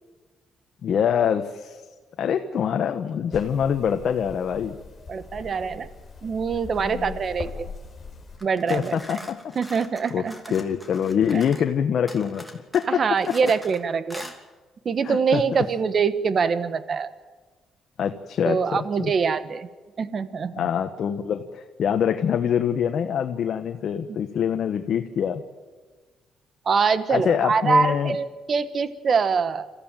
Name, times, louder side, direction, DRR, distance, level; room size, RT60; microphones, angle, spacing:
voice 1, 0.8-1.8 2.2-4.8 6.8-7.2 8.7-9.6 10.1-10.2 10.5-12.4 12.7-13.5 15.0-15.4 18.0-18.6 19.0-19.1 20.5-25.4 27.1-28.1, left 8 dB, 65° left, 6 dB, 1.2 m, -24 dB
sound 1, 3.3-8.4, left 4 dB, 40° left, 5.6 m, -40 dB
voice 2, 5.1-5.9 6.2-7.7 8.4-9.0 9.5-10.3 11.3-11.4 12.9-14.3 14.8-17.1 18.4-19.7 20.0-20.7 26.6-29.7, right 5 dB, 50° right, 13 dB, 1.3 m, -24 dB
sound 2, 8.4-11.7 12.1-13.8 14.1-14.4, left 1 dB, ahead, 2.8 m, -42 dB
26.5 x 14.5 x 9.1 m, 1.4 s
cardioid pair, 90°, 0 cm